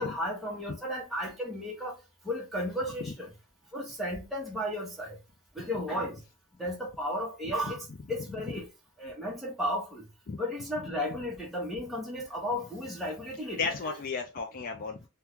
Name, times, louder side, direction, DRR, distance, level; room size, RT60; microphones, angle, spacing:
voice 1, 0.0-2.0 2.2-3.3 3.7-5.2 5.6-6.2 6.6-8.7 9.0-10.0 10.4-13.9, equal, ahead, 0.7 m, -34 dB
voice 2, 13.6-15.1, left 4 dB, 40° left, 0.4 m, -34 dB
2.9 x 2.2 x 3.5 m
head